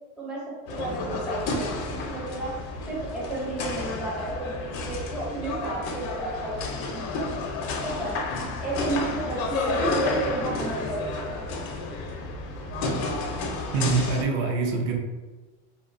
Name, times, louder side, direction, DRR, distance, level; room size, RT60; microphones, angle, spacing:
voice 1, 0.2-2.6 2.9-7.3 7.8-8.1 8.4-11.5, right 2 dB, ahead, -7 dB, 0.4 m, -32 dB
sound 1, 0.7-14.2, left 3 dB, 80° left, 0.6 m, -31 dB
voice 2, 13.7-15.0, right 4 dB, 65° right, 1 dB, 0.6 m, -24 dB
2.6 x 2.2 x 2.5 m, 1.3 s
cardioid pair, 155°, 33 cm